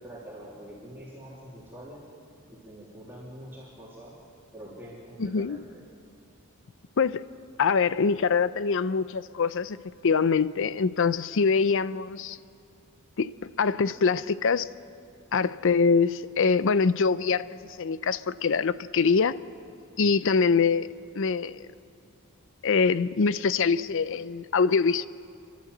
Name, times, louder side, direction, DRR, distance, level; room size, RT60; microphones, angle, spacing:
voice 1, 0.0-2.0 2.5-4.1 4.5-5.8, right 1 dB, 10° right, -7 dB, 3.2 m, -45 dB
voice 2, 5.2-5.6 7.0-7.3 7.6-9.8 10.0-12.4 13.2-14.7 15.3-17.4 17.8-19.4 20.0-20.9 21.1-21.6 22.6-25.1, left 5 dB, 60° left, 16 dB, 0.5 m, -24 dB
29.5 x 11.5 x 7.9 m, 2.4 s
head